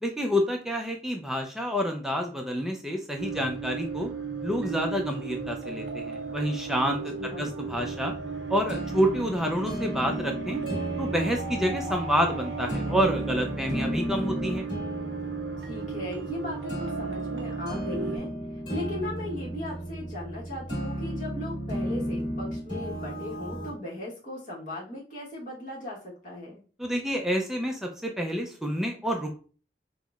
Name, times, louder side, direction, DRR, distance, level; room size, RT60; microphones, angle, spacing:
voice 1, 0.0-4.1 4.4-8.1 8.5-10.6 11.0-14.7 26.8-29.4, equal, ahead, 2 dB, 0.4 m, -28 dB
sound 1, 3.2-18.2, right 5 dB, 85° right, 0.5 m, -35 dB
voice 2, 7.1-7.6 15.6-26.6, left 1 dB, 45° left, -5 dB, 1.1 m, -38 dB
sound 2, 7.6-23.7, equal, 25° left, 1.5 m, -34 dB
5.4 x 2.0 x 2.3 m, 0.38 s
head